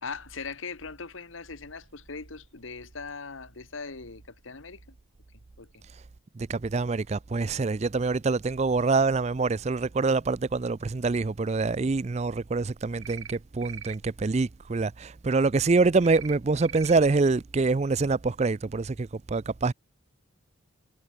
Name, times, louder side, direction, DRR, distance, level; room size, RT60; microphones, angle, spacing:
voice 1, 0.0-4.9 5.6-5.7, left 4 dB, 70° left, 1.5 m, -40 dB
voice 2, 6.4-19.7, right 3 dB, 30° right, 0.4 m, -25 dB
sound 1, 13.0-13.4 13.6-14.0 16.0-16.3 16.6-16.9, right 9 dB, 75° right, 4.0 m, -41 dB
head